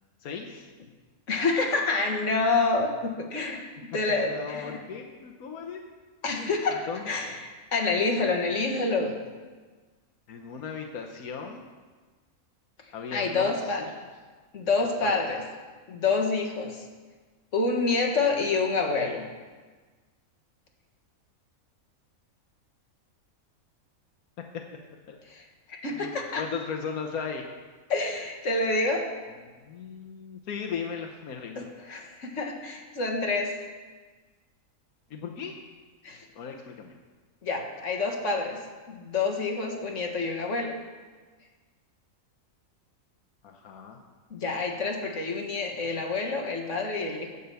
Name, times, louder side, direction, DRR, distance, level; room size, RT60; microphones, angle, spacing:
voice 1, 0.2-0.7 4.2-5.8 6.3-6.5 6.9-7.0 10.3-11.7 12.9-13.6 15.0-15.2 25.1-25.2 26.0-27.4 29.6-31.7 35.1-35.5 36.3-36.9 43.4-44.0, left 6 dB, 90° left, 2 dB, 1.4 m, -37 dB
voice 2, 1.3-3.7 3.9-4.8 6.2-9.1 13.1-13.9 14.5-15.4 15.9-16.9 17.5-19.2 25.3-26.4 27.9-29.1 31.6-33.5 36.0-36.2 37.4-38.6 38.9-40.8 44.3-47.3, left 3 dB, 60° left, 0 dB, 1.9 m, -27 dB
15.5 x 5.5 x 6.9 m, 1.4 s
omnidirectional pair, 1.5 m